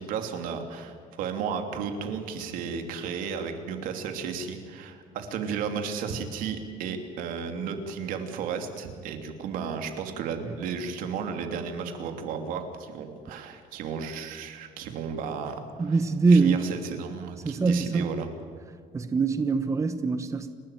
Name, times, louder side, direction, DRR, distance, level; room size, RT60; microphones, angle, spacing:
voice 1, 0.0-15.9 16.3-18.3, right 6 dB, 85° right, 6 dB, 3.0 m, -33 dB
voice 2, 15.8-16.6 17.4-18.1 18.9-20.5, right 4 dB, 20° right, 10 dB, 1.0 m, -23 dB
30.0 x 12.5 x 9.2 m, 2.2 s
cardioid pair, 140°, 14 cm